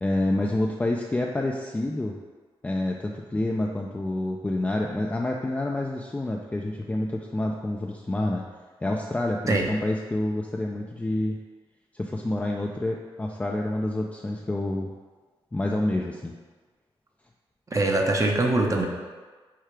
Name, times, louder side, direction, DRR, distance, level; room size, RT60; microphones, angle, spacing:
voice 1, 0.0-2.1 2.6-8.4 8.8-11.4 11.9-14.9 15.5-16.3, left 1 dB, 15° left, 0 dB, 0.3 m, -28 dB
voice 2, 17.7-18.9, right 2 dB, 30° right, 2 dB, 0.6 m, -22 dB
4.8 x 2.4 x 4.4 m, 1.4 s
cardioid pair, 70°, 10 cm